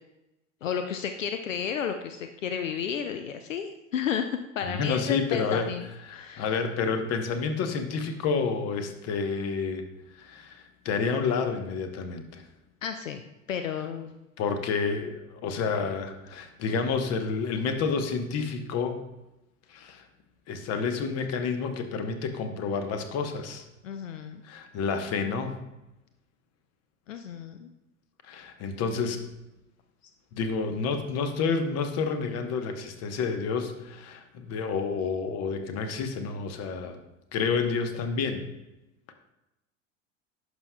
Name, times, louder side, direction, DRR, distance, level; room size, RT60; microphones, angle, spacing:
voice 1, 0.6-5.8 6.1-6.5 12.8-13.2 13.5-14.1 23.8-24.4 27.1-27.7, left 7 dB, 75° left, 7 dB, 0.6 m, -32 dB
voice 2, 4.6-5.7 6.0-9.8 10.1-12.4 14.4-19.0 19.7-20.1 20.5-23.6 24.4-25.6 28.2-29.2 30.3-37.0 37.3-38.4, left 5 dB, 40° left, 7 dB, 1.0 m, -29 dB
11.0 x 6.1 x 2.3 m, 0.97 s
figure-of-eight pair, 75°, 39 cm